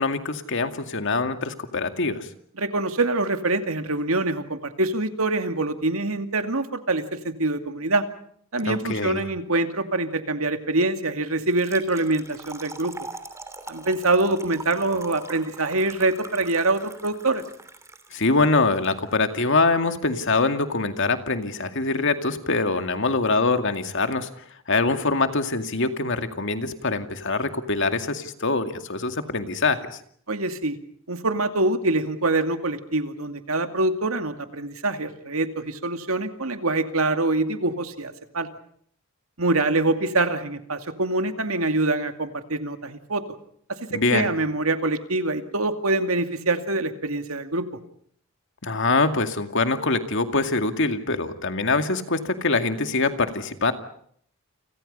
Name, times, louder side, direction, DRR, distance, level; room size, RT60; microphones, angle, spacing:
voice 1, 0.0-2.3 8.6-9.2 18.1-24.3 24.7-29.8 43.9-44.3 48.6-53.7, left 3 dB, 65° left, 8 dB, 2.2 m, -24 dB
voice 2, 2.6-8.1 8.5-12.9 13.7-17.4 30.3-30.8 31.1-38.5 39.4-43.2 43.7-47.7, right 2 dB, 85° right, 7 dB, 2.4 m, -25 dB
Trickle dribble / Fill (with liquid), 11.4-18.9, right 3 dB, 15° right, 3.0 m, -42 dB
29.5 x 25.5 x 5.5 m, 0.63 s
head